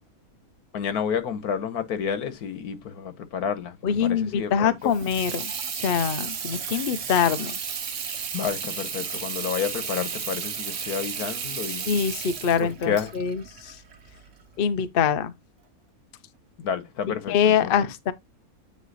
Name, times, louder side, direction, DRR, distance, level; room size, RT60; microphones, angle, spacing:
voice 1, 0.7-4.9 8.3-11.9 12.6-13.1 16.6-17.8, left 7 dB, 85° left, 1.6 m, -30 dB
voice 2, 3.8-7.5 11.9-13.8 14.6-15.3 17.3-18.1, left 7 dB, 50° left, 0.7 m, -24 dB
Water tap faucet / Sink (filling or washing), 4.8-14.4, right 7 dB, 55° right, 1.3 m, -33 dB
9.3 x 3.3 x 4.0 m
omnidirectional pair, 1.6 m